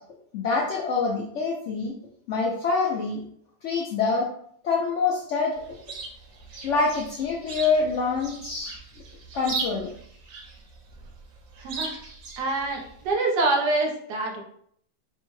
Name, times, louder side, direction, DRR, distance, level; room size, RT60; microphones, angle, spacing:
voice 1, 0.3-1.9 2.3-3.2 3.6-4.3 4.6-5.5 6.6-8.7 9.3-9.9, left 4 dB, 75° left, -2 dB, 0.7 m, -25 dB
Chirp tweet, 5.5-13.1, right 4 dB, 65° right, 0.9 m, -38 dB
voice 2, 11.6-12.0 12.4-14.4, right 2 dB, 80° right, 0 dB, 1.3 m, -25 dB
4.3 x 2.1 x 3.1 m, 0.67 s
omnidirectional pair, 1.8 m